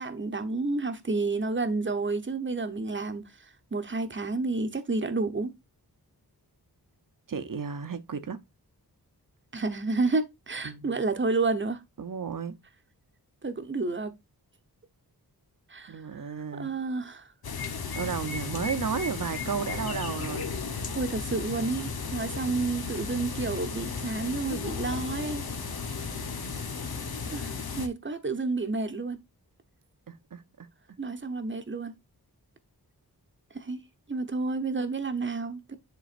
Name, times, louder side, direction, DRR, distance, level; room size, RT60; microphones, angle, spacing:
voice 1, 0.0-5.5 9.5-11.8 13.4-14.1 15.7-16.0 16.6-17.3 21.0-25.4 27.3-29.2 31.0-31.9 33.5-33.8 34.1-35.8, right 3 dB, 30° right, 1.0 m, -30 dB
voice 2, 7.3-8.4 10.6-10.9 12.0-12.6 15.9-16.7 17.9-20.5 30.1-30.7, right 6 dB, 55° right, 0.9 m, -33 dB
sound 1, 17.4-27.9, left 5 dB, 70° left, 1.1 m, -34 dB
10.5 x 3.9 x 2.5 m
wide cardioid pair, 90°, 38 cm